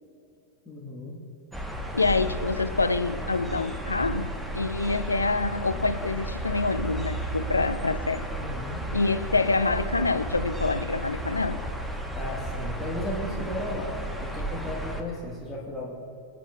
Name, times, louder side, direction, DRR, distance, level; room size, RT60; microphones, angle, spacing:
voice 1, 0.6-1.2 8.3-8.8 12.1-15.9, left 1 dB, 15° left, -4 dB, 1.6 m, -35 dB
sound 1, 1.5-15.0, right 1 dB, 5° right, 1.1 m, -33 dB
voice 2, 1.9-8.2 8.9-11.6, left 3 dB, 80° left, 11 dB, 0.4 m, -26 dB
21.5 x 9.0 x 2.4 m, 2.8 s
figure-of-eight pair, 90°, 0 cm